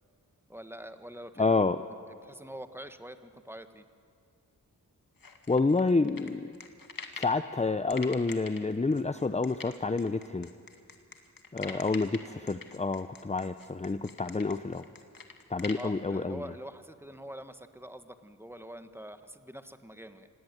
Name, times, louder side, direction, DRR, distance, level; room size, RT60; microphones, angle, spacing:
voice 1, 0.5-1.7 2.2-3.8 11.6-11.8 15.8-20.3, equal, 5° right, 9 dB, 1.5 m, -45 dB
voice 2, 1.4-1.8 5.5-6.5 7.2-10.5 11.5-14.9 15.5-16.5, left 3 dB, 20° left, 11 dB, 0.7 m, -28 dB
sound 1, 5.2-7.4 7.9-15.9, left 5 dB, 65° left, 2.1 m, -44 dB
26.0 x 18.0 x 9.4 m, 2.4 s
cardioid pair, 55°, 36 cm